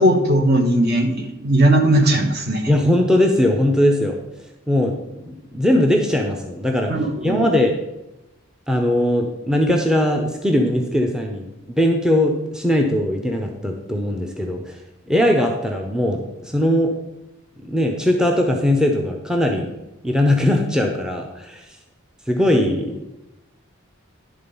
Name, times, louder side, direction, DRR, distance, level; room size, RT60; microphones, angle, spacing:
voice 1, 0.0-2.7 6.9-7.5, right 1 dB, 50° right, 5 dB, 0.9 m, -18 dB
voice 2, 2.7-4.2 4.7-7.0 7.2-7.7 8.7-14.8 15.1-17.0 17.6-19.7 20.0-21.8 22.3-23.1, left 1 dB, 5° right, 2 dB, 0.5 m, -20 dB
10.5 x 3.8 x 5.3 m, 0.96 s
head